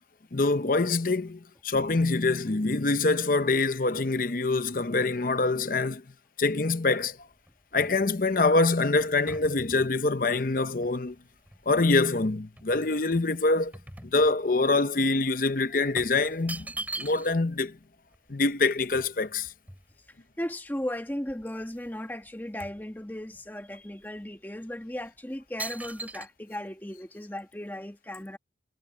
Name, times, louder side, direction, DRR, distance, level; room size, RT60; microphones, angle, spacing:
voice 1, 0.3-6.0 6.4-7.2 7.7-11.2 11.7-13.7 14.1-16.7 17.0-17.8 18.3-19.5, left 3 dB, 50° left, 0.8 m, -25 dB
sound 1, 7.0-12.1 12.6-14.7 15.0-15.2 16.0-17.5 17.8-17.9 18.1-20.3 20.8-20.9 21.2-22.0 22.2-23.5 24.0-24.2 24.8-25.1 25.6-26.3, right 2 dB, 10° right, 6.7 m, -42 dB
voice 2, 20.4-28.4, left 1 dB, 10° left, 1.2 m, -36 dB
head